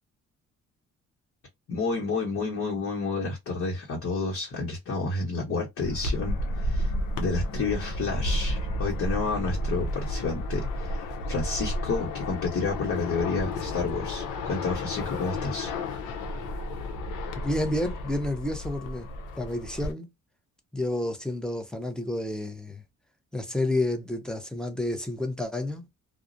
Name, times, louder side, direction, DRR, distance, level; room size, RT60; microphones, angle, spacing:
voice 1, 1.7-6.9 7.2-15.7, left 3 dB, 50° left, 1.1 m, -30 dB
sound 1, 5.8-19.9, left 1 dB, 90° left, 0.7 m, -32 dB
voice 2, 17.4-19.1 19.4-20.1 20.7-22.8 23.3-25.8, left 1 dB, 5° left, 0.6 m, -30 dB
2.4 x 2.0 x 2.5 m
cardioid pair, 90°, 30 cm